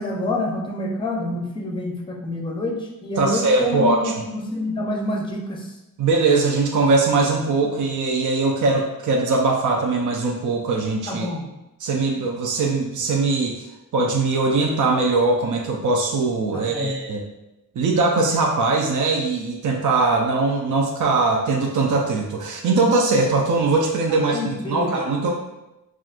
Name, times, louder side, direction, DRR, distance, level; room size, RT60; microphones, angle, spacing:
voice 1, 0.0-5.7 11.1-11.4 16.5-16.9 24.1-25.0, left 1 dB, 15° left, 0 dB, 0.6 m, -27 dB
voice 2, 3.2-4.1 6.0-11.3 11.8-13.7 13.9-17.2 17.8-24.4 24.7-25.3, right 3 dB, 55° right, -1 dB, 0.6 m, -21 dB
5.7 x 2.5 x 2.5 m, 0.95 s
wide cardioid pair, 115°, 35 cm